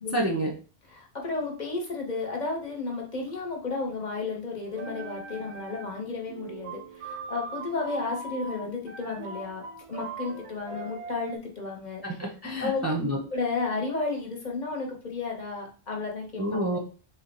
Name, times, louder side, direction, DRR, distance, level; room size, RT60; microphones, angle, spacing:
voice 1, 0.1-0.5 12.0-13.2 16.4-16.8, right 1 dB, 20° right, -2 dB, 0.5 m, -28 dB
voice 2, 0.9-12.2 12.6-12.8 13.3-16.8, left 3 dB, 45° left, 0 dB, 0.9 m, -33 dB
sound 1, 4.7-6.0 6.3-11.4, right 3 dB, 80° right, 0.9 m, -40 dB
3.7 x 2.1 x 4.1 m, 0.37 s
omnidirectional pair, 1.1 m